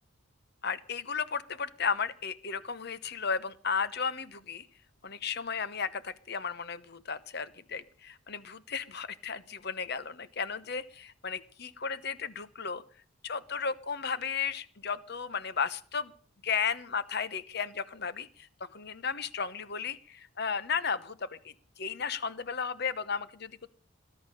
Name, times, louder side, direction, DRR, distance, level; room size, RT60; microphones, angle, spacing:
voice 1, 0.6-4.7 5.0-12.8 13.2-16.1 16.4-23.7, left 6 dB, 50° left, 15 dB, 1.0 m, -34 dB
19.5 x 10.5 x 6.7 m, 0.43 s
head